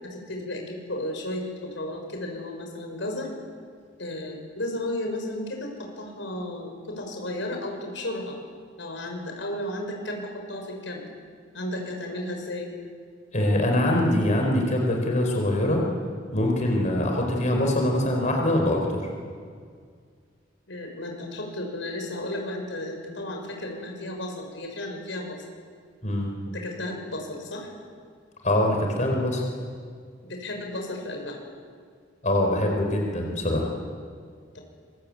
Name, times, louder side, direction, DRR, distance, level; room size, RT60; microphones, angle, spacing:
voice 1, 0.0-3.3 4.0-8.4 8.8-11.0 11.5-12.7 20.7-25.4 26.5-27.7 30.2-31.4 34.5-34.6, left 1 dB, 80° left, 2 dB, 6.4 m, -33 dB
voice 2, 13.3-15.8 16.3-19.1 26.0-26.3 28.4-29.4 32.2-33.7, left 1 dB, 40° left, 1 dB, 4.6 m, -23 dB
26.5 x 24.5 x 8.8 m, 2.1 s
head